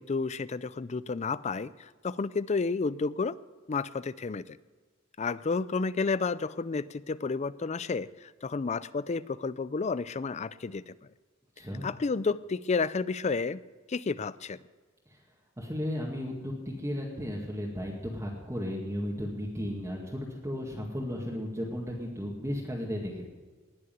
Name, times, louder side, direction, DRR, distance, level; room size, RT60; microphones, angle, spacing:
voice 1, 0.0-3.4 3.7-4.6 5.2-10.9 11.8-13.6 13.9-14.6, left 4 dB, 35° left, 17 dB, 0.4 m, -31 dB
voice 2, 15.6-23.3, equal, 15° right, -3 dB, 2.1 m, -34 dB
19.5 x 6.7 x 9.3 m, 1.4 s
head